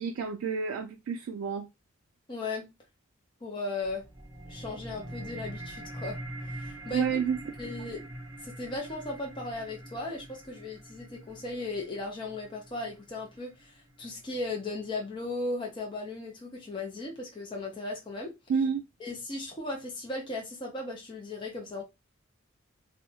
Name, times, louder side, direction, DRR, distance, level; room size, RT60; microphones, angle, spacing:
voice 1, 0.0-1.7 6.9-7.4 18.5-18.8, right 6 dB, 85° right, 0.3 m, -29 dB
voice 2, 2.3-2.7 3.4-4.0 4.5-7.2 7.6-8.1 8.4-18.3 19.0-21.8, left 2 dB, 25° left, 0.5 m, -37 dB
sound 1, 3.8-14.8, right 1 dB, 15° right, 0.7 m, -44 dB
2.7 x 2.1 x 2.7 m
head